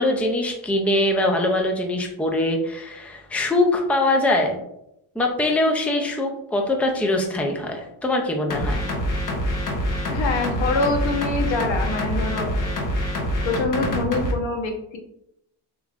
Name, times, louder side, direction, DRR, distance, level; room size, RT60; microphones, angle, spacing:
voice 1, 0.0-4.6 5.2-8.8, left 1 dB, 5° left, 2 dB, 0.5 m, -22 dB
sound 1, 8.5-14.3, equal, 45° left, 1.1 m, -25 dB
voice 2, 10.1-12.6 13.4-15.0, left 3 dB, 80° left, 3 dB, 1.1 m, -25 dB
6.9 x 3.1 x 2.5 m, 0.80 s
cardioid pair, 150°, 45 cm